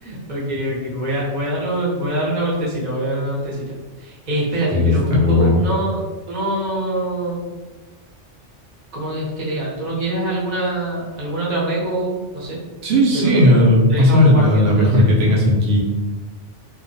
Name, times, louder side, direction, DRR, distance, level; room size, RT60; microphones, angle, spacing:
voice 1, 0.0-7.5 8.9-12.6 13.1-13.6 13.9-15.1, right 1 dB, 40° right, -6 dB, 0.8 m, -24 dB
voice 2, 4.7-5.6 12.8-15.8, left 1 dB, 80° right, -4 dB, 0.9 m, -15 dB
2.5 x 2.2 x 2.6 m, 1.2 s
omnidirectional pair, 1.2 m